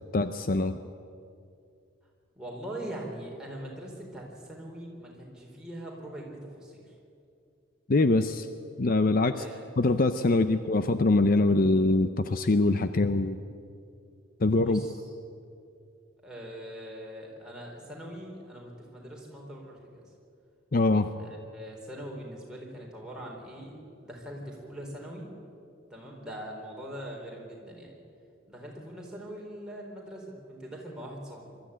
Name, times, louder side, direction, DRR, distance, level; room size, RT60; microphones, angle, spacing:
voice 1, 0.1-0.8 7.9-8.5 8.8-9.4 9.8-13.4 14.4-14.8 20.7-21.1, left 2 dB, 45° left, 10 dB, 0.6 m, -23 dB
voice 2, 2.4-6.9 9.3-9.7 10.5-10.6 14.6-15.1 16.2-20.0 21.1-25.3 25.9-28.0 28.5-31.5, right 1 dB, 5° right, -3 dB, 4.0 m, -42 dB
22.0 x 13.0 x 10.0 m, 2.5 s
head